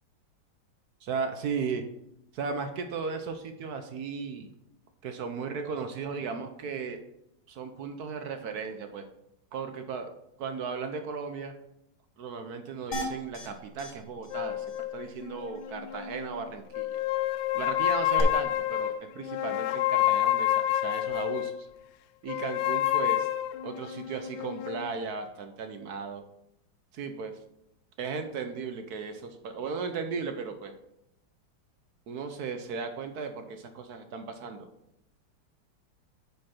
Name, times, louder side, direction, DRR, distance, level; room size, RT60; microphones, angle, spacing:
voice 1, 1.0-1.8 2.3-4.5 5.0-7.0 7.5-9.0 9.5-10.1 10.4-11.5 12.2-14.7 14.9-17.0 17.5-21.7 22.2-23.3 23.6-26.2 26.9-27.3 28.0-30.7 32.1-34.7, right 5 dB, 65° right, 7 dB, 1.0 m, -36 dB
sound 1, 12.9-13.5 13.8-13.9 14.2-14.3 14.7-14.8 18.2-18.3, left 1 dB, 55° left, 1.8 m, -34 dB
sound 2, 14.3-16.3 16.7-21.6 22.3-24.9, left 13 dB, 75° left, 1.2 m, -29 dB
9.1 x 5.3 x 4.3 m, 0.80 s
omnidirectional pair, 2.2 m